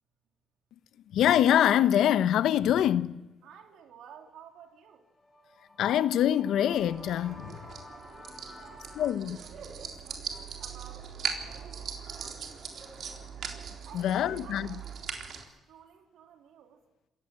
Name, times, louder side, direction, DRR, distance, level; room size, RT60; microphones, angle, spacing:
voice 1, 1.1-3.2 5.8-7.6 9.0-9.4 13.9-14.7, left 10 dB, 80° left, 0.9 m, -24 dB
voice 2, 3.4-5.1 8.5-11.1 11.4-12.5 13.8-15.3 15.7-16.8, right 8 dB, 80° right, 3.4 m, -53 dB
sound 1, 4.9-9.1, left 1 dB, 20° left, 4.5 m, -51 dB
sound 2, 6.7-15.4, right 7 dB, 65° right, 3.8 m, -40 dB
27.0 x 16.5 x 7.7 m
cardioid pair, 90°, 0 cm